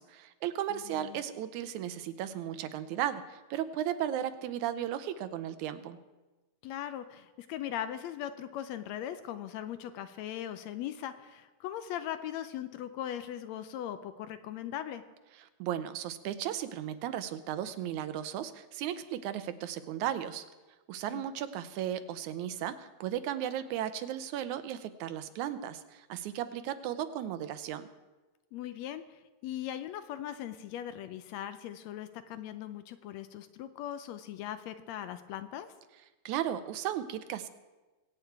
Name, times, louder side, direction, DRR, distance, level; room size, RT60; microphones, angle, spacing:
voice 1, 0.0-6.0 15.6-20.5 20.9-27.9 36.3-37.5, right 10 dB, 85° right, 11 dB, 2.2 m, -35 dB
voice 2, 0.7-1.2 6.6-15.0 21.1-21.2 28.5-35.7, left 11 dB, 75° left, 11 dB, 1.8 m, -39 dB
22.5 x 8.8 x 4.6 m, 1.2 s
omnidirectional pair, 3.3 m